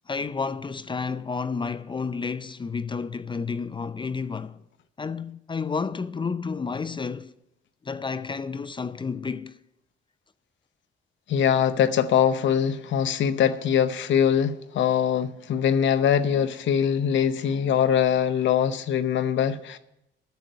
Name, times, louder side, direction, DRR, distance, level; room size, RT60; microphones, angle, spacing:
voice 1, 0.1-4.6 5.0-7.3 7.8-9.6, left 5 dB, 25° left, 0.5 m, -31 dB
voice 2, 11.3-19.8, left 8 dB, 70° left, 0.8 m, -22 dB
10.5 x 6.6 x 9.1 m
cardioid pair, 90°, 20 cm